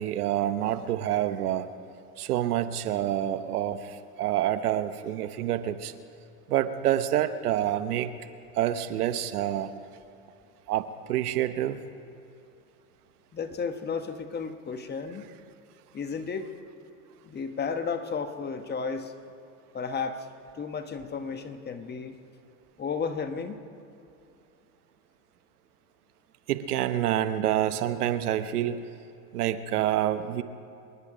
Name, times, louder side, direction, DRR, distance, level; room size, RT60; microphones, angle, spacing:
voice 1, 0.0-1.7 2.2-5.9 6.5-8.1 8.5-9.7 10.7-11.8 26.5-28.9 29.3-30.4, right 12 dB, 85° right, 12 dB, 1.0 m, -27 dB
voice 2, 13.3-15.2 15.9-16.5 17.2-19.1 19.7-20.3 20.5-22.2 22.8-23.6, left 5 dB, 20° left, 8 dB, 1.1 m, -33 dB
25.5 x 10.5 x 5.0 m, 2.7 s
supercardioid pair, 110°, 44 cm